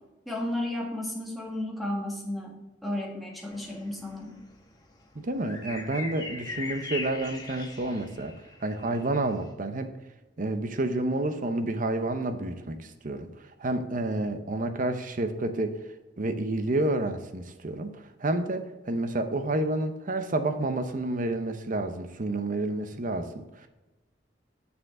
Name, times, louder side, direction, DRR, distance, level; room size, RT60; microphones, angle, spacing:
voice 1, 0.2-2.6 2.8-4.4, left 1 dB, ahead, -2 dB, 1.7 m, -33 dB
sound 1, 3.5-9.5, left 3 dB, 20° left, 1.1 m, -40 dB
voice 2, 5.2-8.3 8.6-9.9 10.4-13.3 13.6-15.8 16.2-17.9 18.2-23.7, right 2 dB, 45° right, 8 dB, 0.7 m, -29 dB
6.9 x 6.6 x 3.7 m, 1.1 s
head